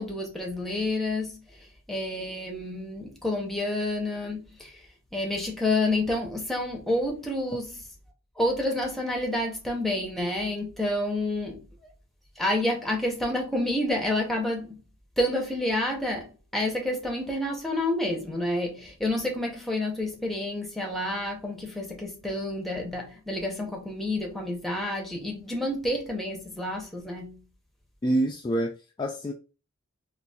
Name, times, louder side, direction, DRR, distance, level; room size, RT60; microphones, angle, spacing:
voice 1, 0.0-1.4 1.9-4.8 5.1-7.8 8.4-11.7 12.4-14.8 15.2-27.4, left 1 dB, ahead, 0.7 m, -29 dB
voice 2, 28.0-29.3, right 1 dB, 20° left, 0.3 m, -27 dB
4.0 x 2.5 x 2.3 m
head